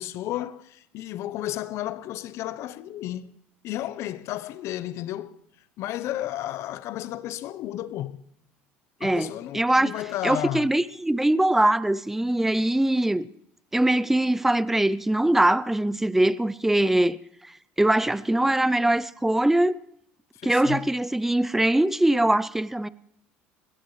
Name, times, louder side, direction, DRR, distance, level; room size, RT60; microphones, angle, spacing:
voice 1, 0.0-3.3 3.6-5.4 5.8-8.2 9.0-10.7 20.4-20.9, left 13 dB, 60° left, 0.8 m, -33 dB
voice 2, 9.0-9.9 10.2-13.3 13.7-17.2 17.4-17.5 17.8-19.8 20.4-22.9, right 1 dB, 5° right, 0.5 m, -22 dB
21.0 x 17.5 x 3.3 m
supercardioid pair, 90°, 5 cm